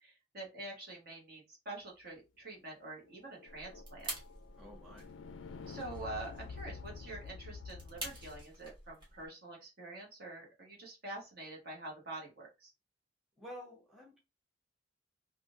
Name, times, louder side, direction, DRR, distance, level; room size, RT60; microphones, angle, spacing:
voice 1, 0.0-4.1 5.7-12.7, right 2 dB, 55° right, -2 dB, 1.3 m, -46 dB
sound 1, 2.9-8.4, left 5 dB, 75° left, 0.3 m, -49 dB
sound 2, 3.5-9.3, right 1 dB, 25° right, 1.3 m, -48 dB
voice 2, 4.6-5.1 13.4-14.2, equal, ahead, -2 dB, 1.2 m, -50 dB
3.6 x 2.5 x 2.5 m, 0.26 s
head